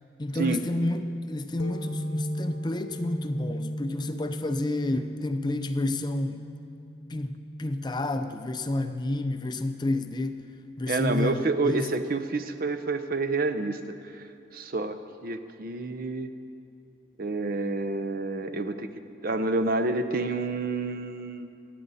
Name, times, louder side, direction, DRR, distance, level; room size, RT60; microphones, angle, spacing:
voice 1, 0.2-6.4 7.1-10.5 10.8-11.9, left 2 dB, 25° left, 9 dB, 0.5 m, -30 dB
sound 1, 1.6-8.9, equal, 60° left, 1.0 m, -37 dB
voice 2, 10.9-14.3 14.5-16.3 17.2-18.9 19.2-21.5, right 3 dB, 50° right, 9 dB, 0.6 m, -29 dB
27.5 x 9.1 x 4.1 m, 2.5 s
head